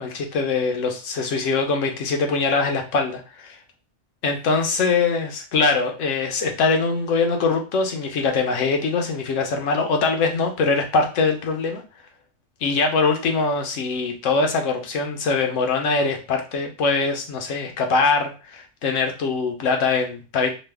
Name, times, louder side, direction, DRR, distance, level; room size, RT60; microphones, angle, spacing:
voice 1, 0.0-3.6 4.2-11.8 12.6-20.5, left 4 dB, 85° left, 4 dB, 1.0 m, -22 dB
3.1 x 2.1 x 3.3 m, 0.34 s
omnidirectional pair, 1.3 m